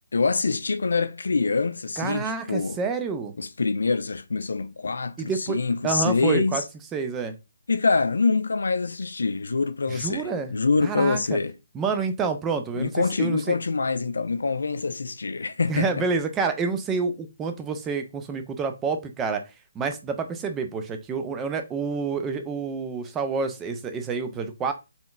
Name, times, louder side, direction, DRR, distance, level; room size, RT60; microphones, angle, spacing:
voice 1, 0.1-2.8 3.4-6.6 7.7-11.5 12.7-16.0, left 4 dB, 65° left, 0.4 m, -25 dB
voice 2, 2.0-3.3 5.2-5.6 5.8-6.6 6.9-7.3 9.9-10.5 10.8-11.4 11.7-13.6 15.7-19.4 19.7-24.7, right 5 dB, 15° right, 0.5 m, -28 dB
4.2 x 2.9 x 2.4 m
figure-of-eight pair, 140°, 0 cm